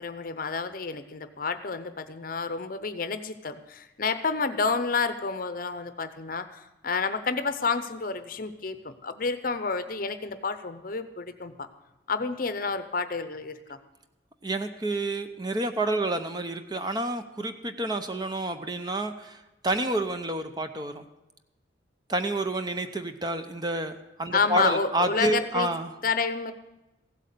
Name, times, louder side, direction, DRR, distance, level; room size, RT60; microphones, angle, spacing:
voice 1, 0.0-11.7 12.1-13.8 24.3-25.7 26.0-26.5, left 4 dB, 45° left, 11 dB, 0.7 m, -29 dB
voice 2, 14.4-21.0 22.1-25.9, right 2 dB, 20° right, 8 dB, 0.7 m, -29 dB
15.5 x 8.2 x 6.7 m, 1.0 s
head